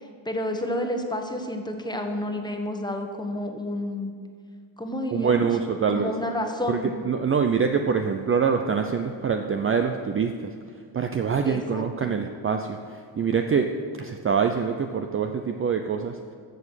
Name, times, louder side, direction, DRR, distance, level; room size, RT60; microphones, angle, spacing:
voice 1, 0.2-4.1 4.8-5.5 5.9-6.9 11.4-12.1, left 1 dB, 10° left, 4 dB, 1.3 m, -30 dB
voice 2, 5.1-6.1 6.7-6.8 7.0-10.5 10.9-13.7 14.0-16.2, right 6 dB, 30° right, 5 dB, 0.6 m, -25 dB
14.5 x 7.6 x 6.4 m, 2.1 s
cardioid pair, 130°, 45 cm